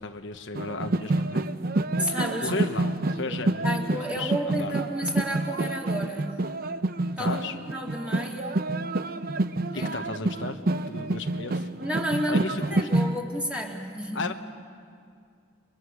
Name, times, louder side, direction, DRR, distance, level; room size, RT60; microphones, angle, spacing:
voice 1, 0.0-1.5 2.1-4.7 7.2-7.6 9.7-10.6 10.8-11.7 12.3-12.9 14.1-14.3, left 3 dB, 65° left, 6 dB, 1.1 m, -34 dB
sound 1, 0.5-13.2, right 2 dB, 50° right, 0.7 m, -28 dB
voice 2, 2.0-2.5 3.6-6.3 7.2-7.4 7.7-8.7 9.7-9.9 11.8-14.3, equal, 5° right, -1 dB, 2.8 m, -31 dB
29.5 x 23.5 x 6.4 m, 2.2 s
head